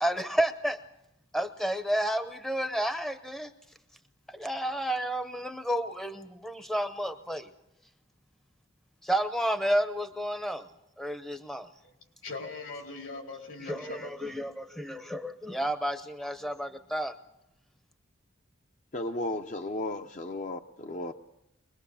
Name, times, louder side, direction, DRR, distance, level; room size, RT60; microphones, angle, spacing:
voice 1, 0.0-0.8 1.3-3.5 4.3-7.5 9.0-10.7 11.0-11.7 13.6-17.1, right 1 dB, ahead, 0.7 m, -31 dB
voice 2, 12.2-14.4, left 3 dB, 75° left, 4.3 m, -40 dB
voice 3, 18.9-21.1, left 2 dB, 40° left, 0.7 m, -34 dB
23.5 x 21.0 x 7.0 m
head